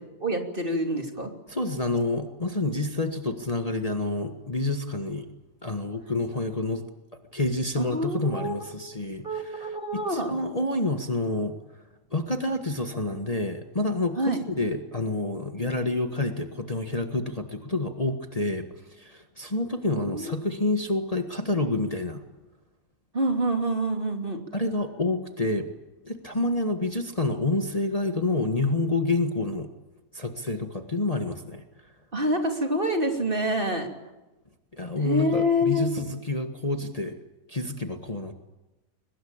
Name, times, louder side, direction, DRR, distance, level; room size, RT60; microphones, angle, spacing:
voice 1, 0.2-1.3 7.8-8.9 9.2-10.3 14.2-14.4 20.0-20.4 23.1-24.4 32.1-33.9 35.0-35.9, equal, 35° right, 4 dB, 3.2 m, -27 dB
voice 2, 1.5-5.3 5.6-6.8 7.3-11.5 12.1-14.2 14.5-18.6 19.0-22.2 24.5-25.7 26.0-29.7 30.1-31.6 34.7-37.1 37.5-38.4, left 2 dB, 25° left, 5 dB, 1.6 m, -28 dB
23.0 x 21.0 x 8.8 m, 1.1 s
omnidirectional pair, 1.5 m